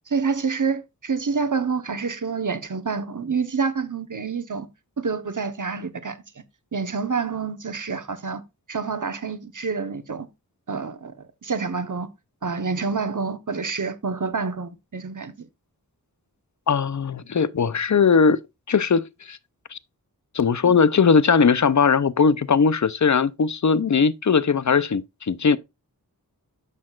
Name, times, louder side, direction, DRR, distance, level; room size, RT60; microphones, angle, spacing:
voice 1, 0.1-4.7 5.0-6.2 6.7-8.4 8.7-10.3 10.7-12.1 12.4-15.3 20.6-20.8, right 5 dB, 55° right, 1.0 m, -27 dB
voice 2, 16.7-18.4 18.7-19.4 19.7-19.8 20.3-25.6, left 5 dB, 50° left, 0.6 m, -19 dB
9.9 x 6.5 x 2.4 m
wide cardioid pair, 50°, 37 cm